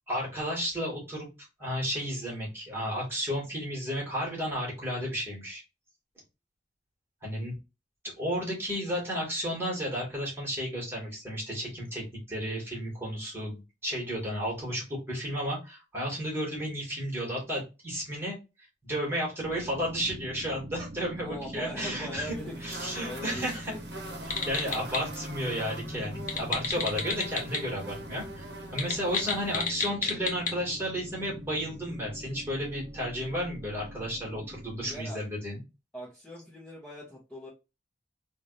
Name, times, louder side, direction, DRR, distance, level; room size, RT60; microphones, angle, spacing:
voice 1, 0.1-1.3 1.6-5.6 7.2-7.5 8.0-23.7 24.2-28.5 28.7-35.6, equal, 15° right, -4 dB, 2.0 m, -33 dB
sound 1, 19.4-35.0, right 1 dB, 35° right, 0.8 m, -44 dB
voice 2, 21.2-22.6 23.0-23.8 34.8-35.2 35.9-37.5, equal, 5° left, -8 dB, 1.3 m, -40 dB
sound 2, 22.3-29.7, right 1 dB, 65° right, 1.0 m, -43 dB
sound 3, 24.2-25.0 26.2-27.6 27.9-28.0 28.7-30.5, left 5 dB, 45° left, 1.0 m, -31 dB
3.7 x 2.6 x 3.2 m, 0.26 s
head